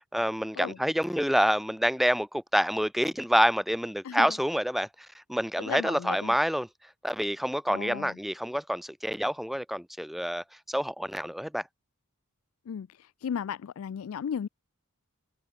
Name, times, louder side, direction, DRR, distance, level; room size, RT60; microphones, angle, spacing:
voice 1, 0.0-6.7 7.0-11.7, equal, ahead, 0.6 m, -27 dB
voice 2, 5.6-6.3 7.7-8.2 12.7-12.9 13.2-14.5, left 7 dB, 65° left, 0.3 m, -35 dB
head